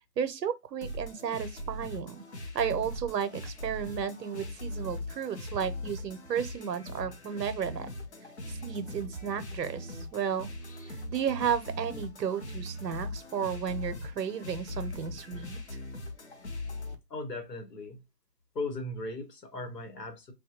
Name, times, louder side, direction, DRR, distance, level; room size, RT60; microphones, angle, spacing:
voice 1, 0.2-2.2 2.5-7.9 8.5-10.5 10.9-15.6, right 8 dB, 90° right, 0.7 m, -33 dB
sound 1, 0.8-16.9, left 1 dB, 45° left, 0.6 m, -40 dB
voice 2, 17.1-18.0 18.5-20.3, left 2 dB, 80° left, 1.3 m, -37 dB
3.6 x 2.2 x 2.8 m
hypercardioid pair, 170°, 48 cm